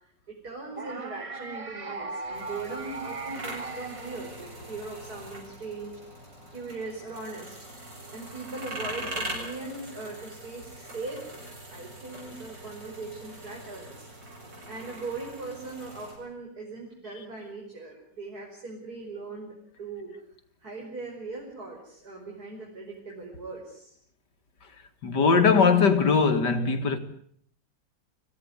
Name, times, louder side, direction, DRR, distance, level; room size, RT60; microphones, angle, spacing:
voice 1, 0.3-5.9 6.5-7.6 8.1-11.2 11.7-14.1 14.7-20.1 20.6-23.9, right 3 dB, 55° right, 5.8 m, -39 dB
sound 1, 0.8-4.9, right 3 dB, 25° right, 0.7 m, -38 dB
sound 2, 2.3-16.1, right 1 dB, 75° right, 8.4 m, -42 dB
voice 2, 25.0-27.0, left 5 dB, 65° left, 2.6 m, -20 dB
26.0 x 16.5 x 9.7 m
omnidirectional pair, 2.0 m